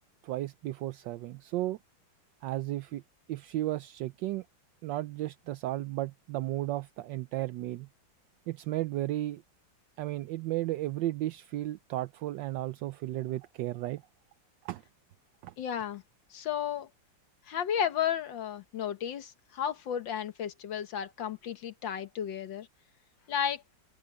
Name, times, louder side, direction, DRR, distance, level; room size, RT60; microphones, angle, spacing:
voice 1, 0.2-1.8 2.4-3.0 3.3-4.4 4.8-7.9 8.5-9.4 10.0-14.0 14.6-14.8 15.4-15.5, right 15 dB, 75° right, 1.3 m, -34 dB
voice 2, 15.6-16.0 16.3-16.9 17.5-22.7 23.3-23.6, left 9 dB, 75° left, 1.9 m, -33 dB
omnidirectional pair, 2.0 m